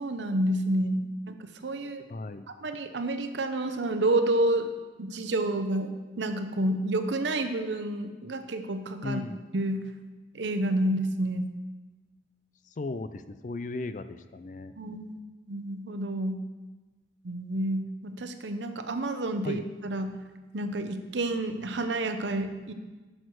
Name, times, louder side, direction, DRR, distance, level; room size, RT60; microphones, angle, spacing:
voice 1, 0.0-1.3 1.6-2.0 2.6-4.7 5.0-9.2 9.5-9.9 10.3-11.5 14.8-15.2 15.5-16.4 17.2-20.1 20.5-22.7, right 1 dB, 85° right, 8 dB, 0.8 m, -29 dB
voice 2, 2.1-2.5 9.0-9.4 12.7-14.7 19.4-19.6, left 3 dB, 45° left, 12 dB, 0.4 m, -36 dB
11.0 x 6.5 x 4.6 m, 1.2 s
head